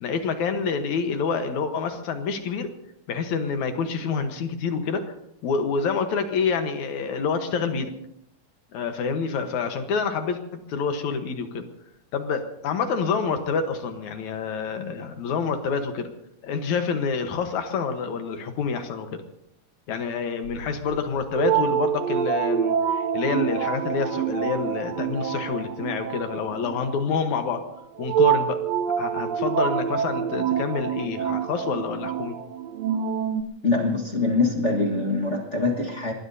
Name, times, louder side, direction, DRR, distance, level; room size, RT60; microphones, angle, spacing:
voice 1, 0.0-2.7 3.1-5.2 5.4-7.9 8.7-10.4 10.7-11.6 12.1-16.1 16.4-19.2 19.9-27.6 28.0-28.6 29.0-32.4, left 5 dB, 70° left, 7 dB, 2.5 m, -27 dB
sound 1, 20.4-33.4, right 8 dB, 70° right, 1.7 m, -27 dB
voice 2, 33.6-36.1, left 3 dB, 35° left, 1 dB, 1.1 m, -24 dB
26.0 x 20.0 x 2.8 m, 0.75 s
omnidirectional pair, 3.6 m